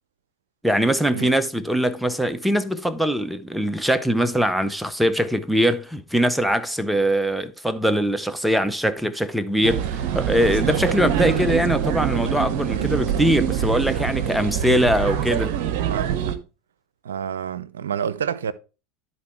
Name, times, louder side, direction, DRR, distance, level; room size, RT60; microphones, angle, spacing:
voice 1, 0.6-15.6, equal, ahead, 0.8 m, -22 dB
sound 1, 9.6-16.4, right 10 dB, 60° right, 0.9 m, -24 dB
voice 2, 12.7-13.1 15.9-16.4 17.0-18.5, right 8 dB, 85° right, 0.6 m, -29 dB
10.5 x 4.2 x 4.5 m
hypercardioid pair, 90°, 0 cm